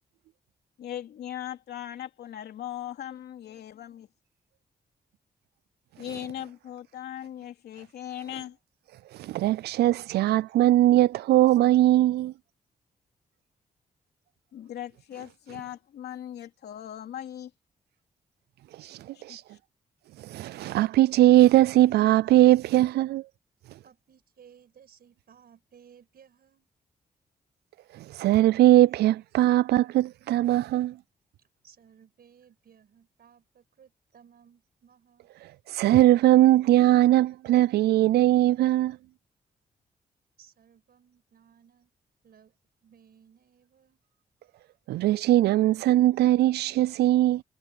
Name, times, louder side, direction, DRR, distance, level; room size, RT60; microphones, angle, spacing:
voice 1, 0.8-4.1 6.0-8.6 14.5-17.5 19.1-19.6, left 11 dB, 85° left, 3.3 m, -39 dB
voice 2, 9.1-12.3 18.8-19.4 20.2-23.2 27.9-31.0 35.7-39.0 44.9-47.4, right 14 dB, 85° right, 0.4 m, -20 dB
voice 3, 23.8-26.7 31.4-35.3 40.4-41.9 42.2-42.5 42.8-44.0, right 8 dB, 70° right, 5.7 m, -58 dB
supercardioid pair, 55°, 16 cm